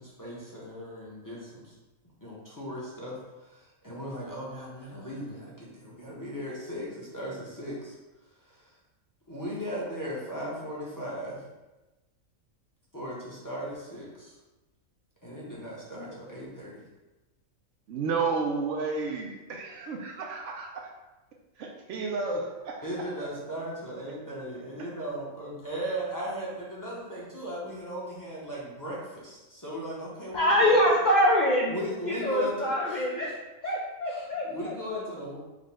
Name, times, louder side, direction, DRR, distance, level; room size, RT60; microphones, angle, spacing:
voice 1, 0.0-1.7 2.2-7.9 8.3-8.8 9.3-11.4 12.9-14.4 15.2-16.8 22.8-30.8 31.7-33.4 33.6-33.7 34.0-35.4, equal, 20° left, -6 dB, 0.7 m, -37 dB
voice 2, 17.9-20.9 21.6-22.8 23.2-23.3, right 4 dB, 70° right, 0 dB, 0.8 m, -32 dB
voice 3, 30.3-31.7 32.1-33.3 33.6-34.7, equal, 80° left, -3 dB, 0.4 m, -24 dB
4.9 x 2.1 x 3.4 m, 1.1 s
omnidirectional pair, 1.4 m